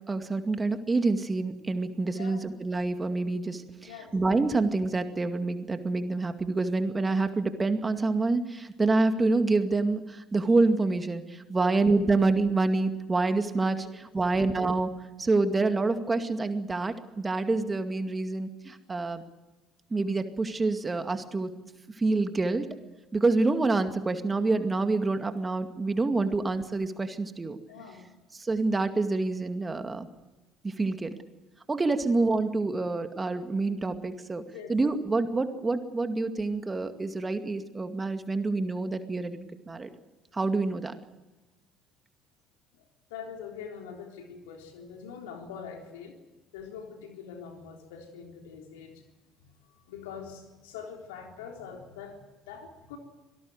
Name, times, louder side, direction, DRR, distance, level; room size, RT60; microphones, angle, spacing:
voice 1, 0.0-14.9 15.2-19.2 19.9-21.5 22.0-22.7 23.1-27.6 28.3-30.1 30.6-31.1 31.7-34.4 34.7-39.9 40.3-40.9, right 3 dB, 25° right, 8 dB, 2.2 m, -27 dB
voice 2, 3.8-4.2 11.6-11.8 13.8-13.9 14.2-14.3 27.7-28.2 34.5-34.8 42.7-42.8 43.1-46.2 46.5-49.0 49.4-53.0, left 7 dB, 75° left, 3 dB, 3.8 m, -44 dB
26.0 x 18.0 x 7.9 m, 1.1 s
figure-of-eight pair, 55°, 0 cm